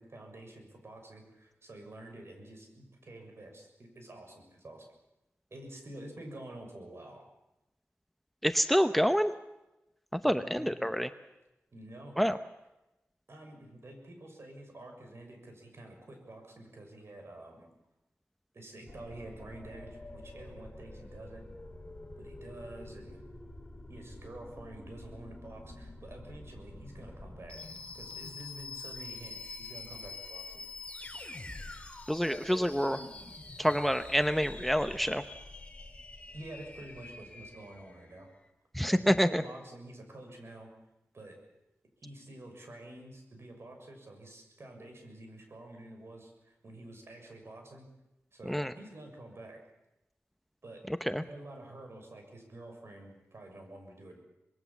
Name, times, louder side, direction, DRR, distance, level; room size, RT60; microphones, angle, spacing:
voice 1, 0.0-4.9 5.5-7.2 10.2-10.8 11.7-12.1 13.3-17.7 18.5-21.4 22.2-23.2 23.9-30.6 36.3-38.3 38.9-40.7 41.1-41.4 42.0-47.9 48.3-49.6 50.6-50.8 51.2-54.2, right 1 dB, 60° right, 3 dB, 6.7 m, -48 dB
voice 2, 8.4-9.3 10.1-11.1 12.2-12.4 32.1-33.0 33.6-35.2 38.8-39.4 48.5-48.7 51.1-51.2, equal, ahead, 10 dB, 0.8 m, -27 dB
sound 1, 18.9-38.2, left 2 dB, 25° left, 3.1 m, -46 dB
26.0 x 21.0 x 7.3 m, 0.95 s
wide cardioid pair, 70°, 5 cm